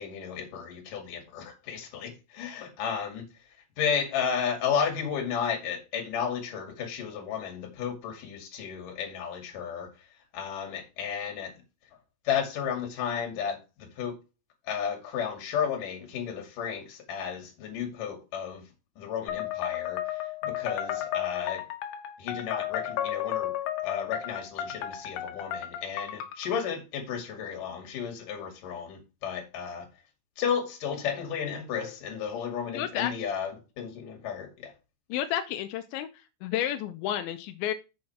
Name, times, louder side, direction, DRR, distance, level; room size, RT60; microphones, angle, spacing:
voice 1, 0.0-3.3 3.8-9.9 10.3-11.5 12.3-14.2 14.7-18.6 19.0-21.6 22.2-23.5 23.8-29.9 30.4-34.7, left 7 dB, 50° left, 3.3 m, -33 dB
sound 1, 19.3-26.5, left 11 dB, 70° left, 2.9 m, -33 dB
voice 2, 32.7-33.1 35.1-36.1 36.4-37.7, left 11 dB, 90° left, 2.7 m, -31 dB
7.7 x 7.1 x 4.5 m
omnidirectional pair, 5.9 m